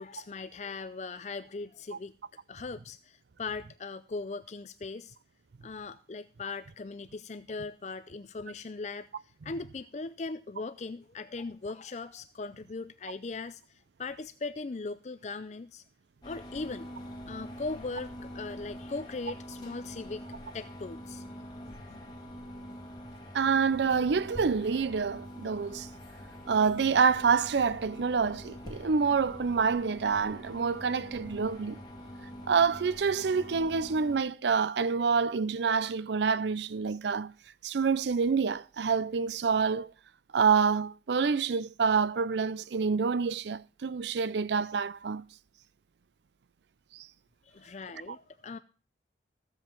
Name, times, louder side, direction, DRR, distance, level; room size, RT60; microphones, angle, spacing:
voice 1, 0.0-2.1 2.5-5.2 5.6-9.1 9.4-15.8 16.2-16.9 17.3-20.2 20.5-22.0 47.4-48.6, left 3 dB, 40° left, 0.4 m, -39 dB
sound 1, 16.2-34.2, equal, 25° left, 2.2 m, -45 dB
voice 2, 23.3-25.9 26.5-31.8 32.5-37.3 37.6-39.9 40.3-45.2 46.9-47.1, right 5 dB, 70° right, 0.5 m, -27 dB
14.5 x 7.7 x 4.4 m
head